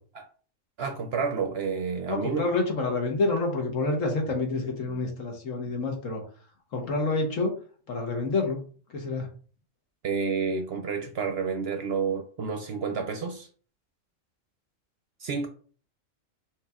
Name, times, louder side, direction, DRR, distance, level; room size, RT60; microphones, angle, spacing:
voice 1, 0.8-2.5 10.0-13.5 15.2-15.5, right 5 dB, 60° right, 0.7 m, -30 dB
voice 2, 2.1-6.2 6.7-7.5 7.9-8.6 8.9-9.3, left 3 dB, 70° left, 1.4 m, -28 dB
6.3 x 2.9 x 2.4 m
omnidirectional pair, 1.4 m